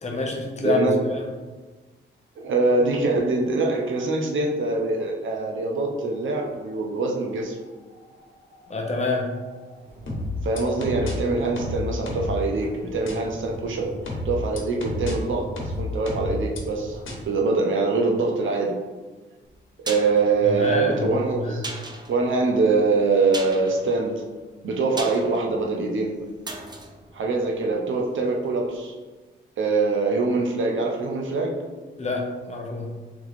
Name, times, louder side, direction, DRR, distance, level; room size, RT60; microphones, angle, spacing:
voice 1, 0.0-0.8 8.7-9.3 20.5-21.1 21.4-21.6 32.0-32.9, left 3 dB, 35° left, 1 dB, 0.8 m, -27 dB
voice 2, 0.6-0.9 2.4-7.6 10.4-13.9 14.2-15.5 15.7-17.0 17.3-18.7 19.9-21.7 22.1-24.1 24.6-26.1 27.1-28.9 29.6-31.5, right 3 dB, 70° right, 0 dB, 0.8 m, -23 dB
sound 1, 2.9-17.2, equal, 85° right, 1.4 m, -43 dB
sound 2, 10.1-11.1 11.6-12.4 13.1-13.2 14.1-15.1 15.6-16.6 17.1-17.2, left 2 dB, 70° left, 1.0 m, -30 dB
sound 3, 19.4-28.3 28.6-28.7, right 2 dB, 20° right, 0.5 m, -39 dB
3.6 x 3.5 x 3.4 m, 1.3 s
cardioid pair, 95°, 21 cm